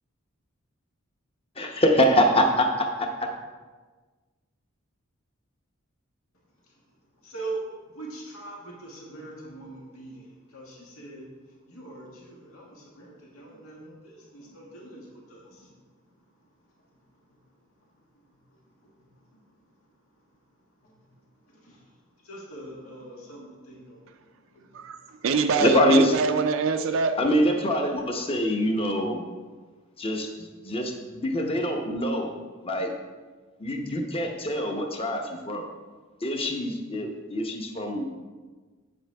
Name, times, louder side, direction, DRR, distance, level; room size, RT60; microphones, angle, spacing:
voice 1, 1.6-3.3 25.6-26.1 27.2-29.2 30.0-32.3 32.6-32.9 33.6-35.6 36.2-38.1, equal, 25° left, 3 dB, 0.9 m, -24 dB
voice 2, 6.3-25.3 29.6-30.1, right 2 dB, 90° left, -3 dB, 1.7 m, -44 dB
voice 3, 24.7-27.2, right 5 dB, 65° right, 7 dB, 0.4 m, -25 dB
8.3 x 7.9 x 3.4 m, 1.4 s
head